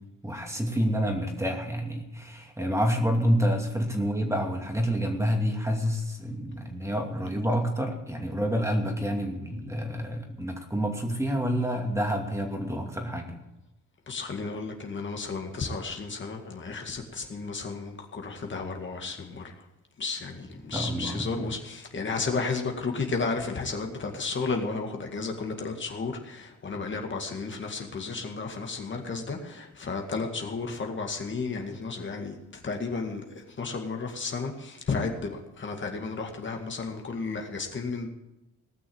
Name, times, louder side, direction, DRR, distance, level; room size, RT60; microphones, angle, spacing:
voice 1, 0.2-13.4 20.7-21.4, equal, 10° right, 2 dB, 2.5 m, -28 dB
voice 2, 14.1-19.7 20.0-38.1, left 4 dB, 40° left, 3 dB, 2.0 m, -33 dB
18.5 x 6.3 x 8.7 m, 0.94 s
cardioid pair, 90°, 30 cm